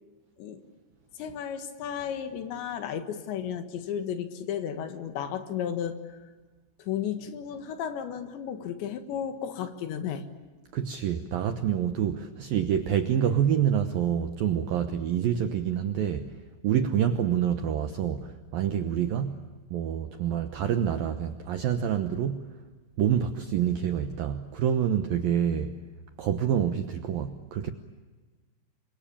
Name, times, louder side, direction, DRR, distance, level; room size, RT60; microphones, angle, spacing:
voice 1, 1.2-6.0 6.8-10.2 12.1-12.2, left 8 dB, 70° left, 3.7 m, -33 dB
voice 2, 10.7-16.4 16.6-19.4 19.7-22.6 23.0-25.7 26.2-27.7, right 9 dB, 75° right, 2.1 m, -27 dB
28.0 x 24.5 x 8.7 m
omnidirectional pair, 5.6 m